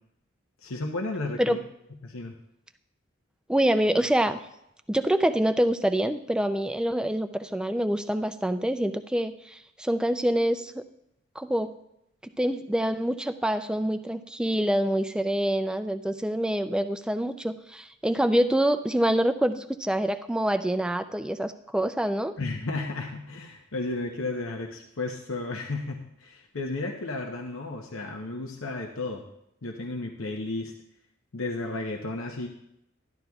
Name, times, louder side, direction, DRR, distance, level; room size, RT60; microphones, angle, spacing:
voice 1, 0.6-1.6 2.0-2.3 22.4-29.2 29.6-30.7 31.3-32.5, left 2 dB, 75° left, 2 dB, 0.8 m, -33 dB
voice 2, 3.5-4.4 4.9-10.8 11.4-11.7 12.2-22.4, right 1 dB, 5° right, 9 dB, 0.3 m, -26 dB
13.5 x 11.0 x 2.3 m, 0.81 s
head